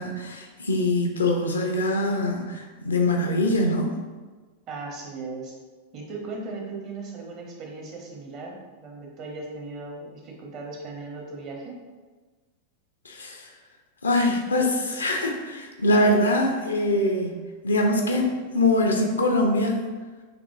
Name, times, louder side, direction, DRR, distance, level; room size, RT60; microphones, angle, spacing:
voice 1, 0.0-4.0 13.0-13.5 14.0-17.3 17.6-19.8, left 1 dB, 75° left, 2 dB, 0.6 m, -23 dB
voice 2, 4.7-5.5 5.9-11.8, right 3 dB, 40° right, -1 dB, 1.0 m, -37 dB
6.0 x 3.0 x 2.6 m, 1.3 s
figure-of-eight pair, 90°, 0 cm